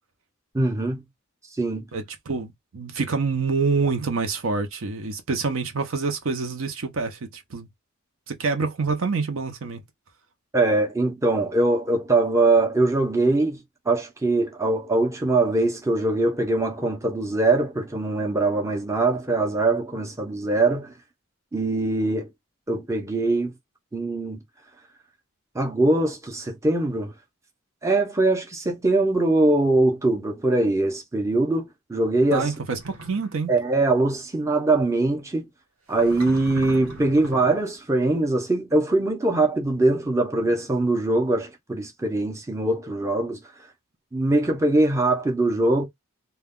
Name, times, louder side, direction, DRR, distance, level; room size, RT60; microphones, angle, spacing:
voice 1, 0.5-1.0 1.6-1.9 10.5-20.9 21.5-22.3 22.7-23.5 23.9-24.4 25.5-27.1 27.8-32.5 33.5-35.5 35.9-43.4 44.1-45.9, right 2 dB, 15° right, 0.6 m, -22 dB
voice 2, 1.9-7.7 8.3-9.8 32.3-33.5, right 4 dB, 70° right, 0.6 m, -27 dB
sound 1, 32.8-33.3 35.9-37.7, right 1 dB, 85° right, 1.3 m, -39 dB
2.3 x 2.2 x 3.5 m
head